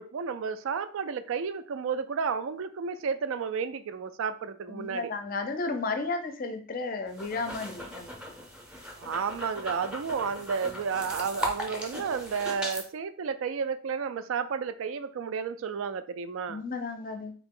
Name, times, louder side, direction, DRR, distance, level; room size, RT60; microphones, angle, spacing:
voice 1, 0.0-5.1 9.0-16.6, right 6 dB, 70° right, 12 dB, 0.3 m, -32 dB
voice 2, 4.7-8.1 16.5-17.3, left 3 dB, 40° left, 7 dB, 0.5 m, -33 dB
sound 1, 7.1-12.8, equal, 5° right, 0.6 m, -38 dB
3.5 x 2.8 x 3.7 m, 0.43 s
head